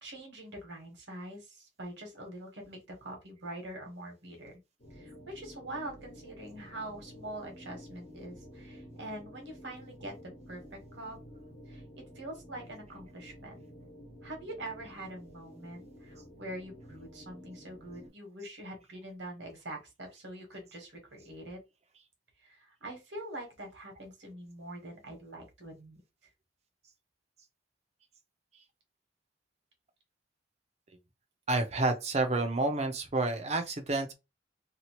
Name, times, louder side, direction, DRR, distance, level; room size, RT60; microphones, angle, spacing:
voice 1, 0.0-4.5 4.9-11.2 11.7-13.5 14.2-21.6 22.4-26.3, right 1 dB, 70° right, 1.3 m, -44 dB
sound 1, 4.8-18.1, equal, 50° left, 1.1 m, -51 dB
voice 2, 31.5-34.1, right 2 dB, 35° right, 0.6 m, -29 dB
2.9 x 2.4 x 2.9 m
head